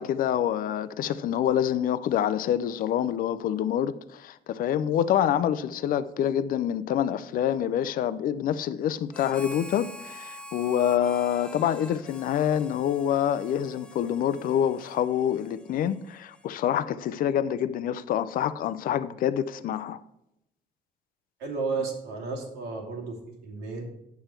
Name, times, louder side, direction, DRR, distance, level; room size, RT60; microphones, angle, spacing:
voice 1, 0.0-20.0, left 10 dB, 55° left, 0.5 m, -26 dB
Harmonica, 9.1-16.9, equal, 5° left, 0.5 m, -46 dB
voice 2, 21.4-23.2 23.4-23.8, right 4 dB, 90° right, 2.8 m, -32 dB
9.2 x 6.8 x 4.4 m
cardioid pair, 110°, 17 cm